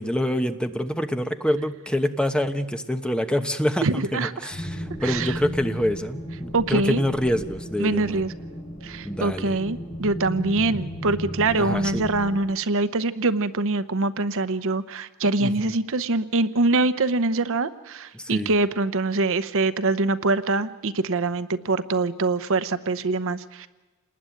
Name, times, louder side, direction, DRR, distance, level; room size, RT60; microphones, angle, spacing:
voice 1, 0.0-8.2 9.0-9.6 11.6-12.1 15.4-15.7 18.1-18.5, left 1 dB, 5° left, 7 dB, 1.0 m, -26 dB
voice 2, 3.8-4.3 5.0-5.4 6.5-7.0 7.8-8.3 8.8-23.7, right 3 dB, 65° right, 13 dB, 0.9 m, -24 dB
sound 1, 4.5-12.4, equal, 25° left, 7.7 m, -35 dB
28.0 x 20.0 x 9.3 m, 1.2 s
head